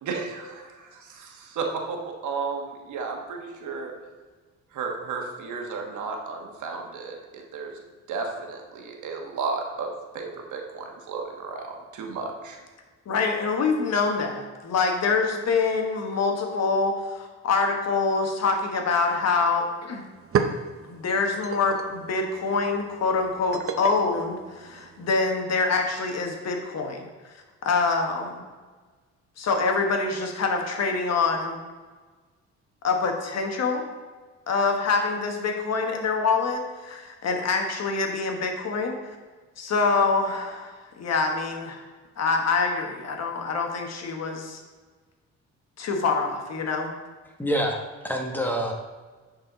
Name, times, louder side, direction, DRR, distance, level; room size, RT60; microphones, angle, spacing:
voice 1, 0.0-3.9 4.7-7.7 8.1-12.6, right 4 dB, 75° right, 2 dB, 1.3 m, -33 dB
voice 2, 13.1-20.0 20.8-27.3 27.6-28.4 29.4-31.6 32.8-33.8 34.5-38.9 39.6-41.8 42.2-44.6 45.8-46.9, left 4 dB, 60° left, 3 dB, 1.3 m, -25 dB
sound 1, 19.6-19.7 20.0-25.2, right 6 dB, 45° right, 0.7 m, -33 dB
voice 3, 47.4-48.7, equal, 5° left, 1 dB, 1.3 m, -27 dB
10.0 x 4.4 x 4.0 m, 1.4 s
cardioid pair, 90°, 30 cm